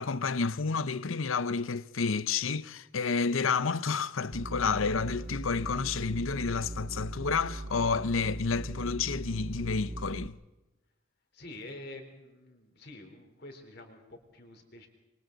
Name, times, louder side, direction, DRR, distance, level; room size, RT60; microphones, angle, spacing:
voice 1, 0.0-10.4, left 5 dB, 80° left, 0.7 m, -30 dB
sound 1, 4.3-10.3, right 2 dB, 35° right, 0.7 m, -39 dB
voice 2, 11.3-14.9, left 2 dB, 50° left, 3.8 m, -47 dB
27.5 x 23.5 x 4.0 m
head